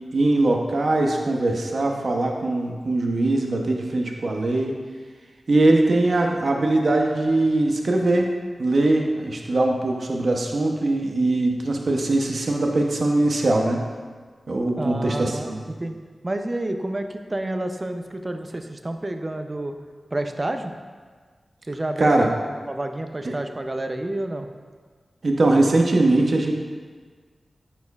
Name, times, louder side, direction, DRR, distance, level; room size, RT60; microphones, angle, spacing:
voice 1, 0.1-4.8 5.5-8.3 8.6-13.8 14.5-15.6 22.0-22.3 25.2-26.5, right 2 dB, 65° right, 1 dB, 0.7 m, -21 dB
voice 2, 14.8-16.0 16.2-19.7 20.1-20.7 21.7-22.4 22.7-24.5, right 1 dB, 35° right, 6 dB, 0.5 m, -29 dB
9.4 x 4.3 x 2.3 m, 1.5 s
cardioid pair, 50°, 0 cm